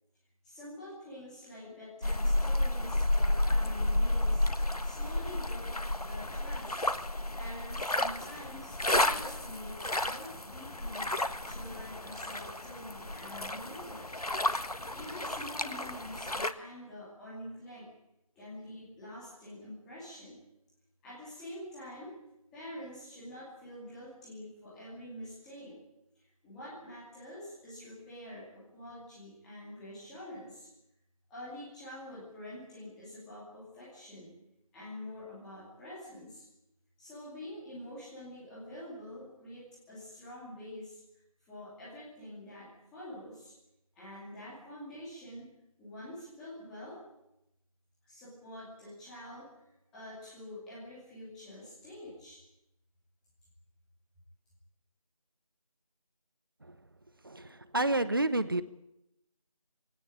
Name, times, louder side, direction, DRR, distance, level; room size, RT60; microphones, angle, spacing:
voice 1, 0.4-4.5 4.8-6.9 7.3-11.1 11.5-14.1 14.9-17.9 18.4-20.4 21.0-22.2 22.5-25.8 26.1-30.7 31.3-34.3 34.7-36.4 37.0-41.0 41.5-43.5 44.0-45.5 45.8-47.0 48.0-49.6 49.9-52.4, left 1 dB, 5° left, -9 dB, 2.5 m, -46 dB
sound 1, 2.0-16.5, left 1 dB, 90° left, 1.5 m, -32 dB
voice 2, 57.2-58.6, right 2 dB, 35° right, 14 dB, 0.9 m, -29 dB
20.5 x 17.5 x 8.9 m, 0.88 s
figure-of-eight pair, 170°, 19 cm